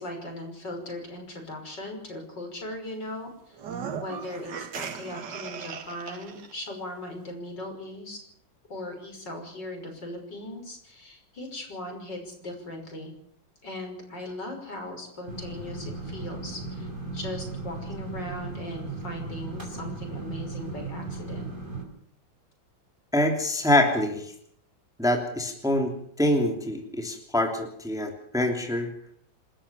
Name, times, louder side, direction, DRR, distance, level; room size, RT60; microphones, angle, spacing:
voice 1, 0.0-3.6 3.9-8.2 8.7-13.1 13.6-21.5, left 1 dB, 60° left, 3 dB, 6.3 m, -38 dB
sound 1, 3.5-6.5, right 7 dB, 60° right, 1.9 m, -37 dB
sound 2, 15.3-21.8, right 3 dB, 25° right, 5.3 m, -36 dB
voice 2, 23.1-24.3 25.0-25.9 26.2-28.9, left 1 dB, ahead, 3 dB, 2.9 m, -25 dB
27.5 x 13.5 x 7.3 m, 0.66 s
omnidirectional pair, 2.2 m